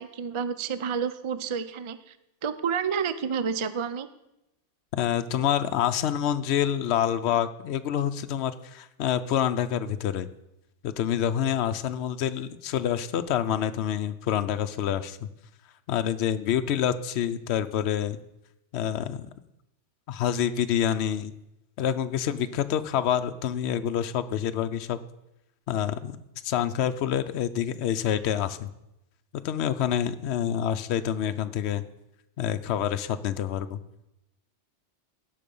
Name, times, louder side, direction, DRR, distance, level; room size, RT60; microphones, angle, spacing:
voice 1, 0.0-2.2 2.4-4.1, right 6 dB, 50° right, 13 dB, 0.3 m, -30 dB
voice 2, 4.9-10.3 10.8-15.3 15.9-18.2 18.7-19.3 20.1-21.3 21.8-25.0 25.7-26.2 26.4-28.7 29.4-31.8 32.4-33.8, left 9 dB, 70° left, 10 dB, 0.9 m, -27 dB
17.0 x 5.7 x 5.4 m, 0.87 s
omnidirectional pair, 1.2 m